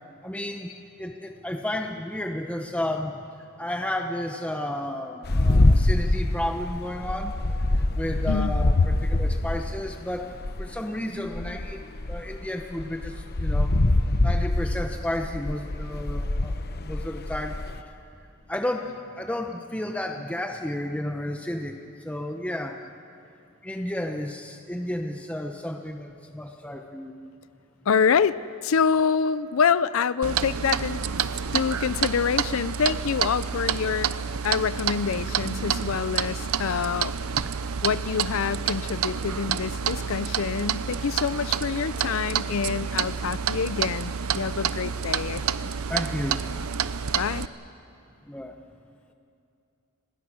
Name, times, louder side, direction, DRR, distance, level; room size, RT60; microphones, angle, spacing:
voice 1, 0.2-7.4 7.7-11.8 12.1-13.8 14.2-17.6 17.9-18.0 18.5-22.8 23.6-27.2 45.9-46.5 48.2-48.6, left 1 dB, 5° left, 4 dB, 0.9 m, -32 dB
sound 1, 5.2-10.8 11.3-17.8, left 2 dB, 45° left, 1.0 m, -24 dB
voice 2, 27.9-31.0 31.5-34.1 34.4-37.1 37.8-45.7 47.2-47.5, left 6 dB, 65° left, 17 dB, 0.5 m, -26 dB
Clock, 30.2-47.5, right 7 dB, 75° right, 0.7 m, -29 dB
30.0 x 21.5 x 6.2 m, 2.6 s
head